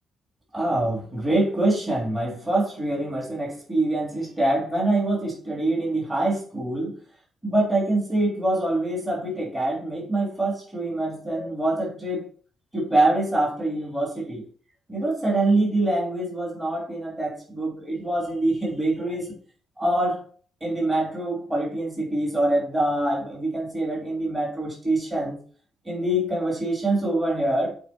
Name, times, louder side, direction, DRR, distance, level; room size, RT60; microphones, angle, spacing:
voice 1, 0.5-7.0 7.4-12.3 12.7-14.4 14.9-19.3 19.8-20.2 20.6-25.4 25.8-27.7, right 1 dB, 20° right, -2 dB, 3.1 m, -25 dB
8.2 x 4.4 x 4.3 m, 0.42 s
cardioid pair, 90°, 0 cm